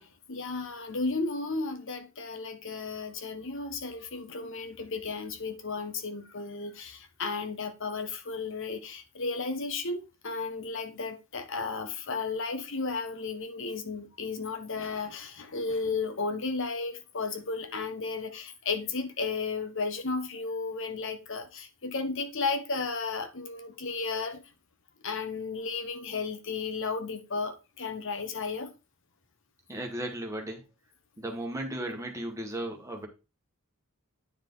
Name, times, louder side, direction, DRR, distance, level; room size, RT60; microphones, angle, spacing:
voice 1, 0.0-24.4 25.0-28.7, left 4 dB, 60° left, 1.1 m, -34 dB
voice 2, 29.7-30.6 31.2-33.1, right 1 dB, 15° right, 1.7 m, -35 dB
9.5 x 4.8 x 3.9 m
head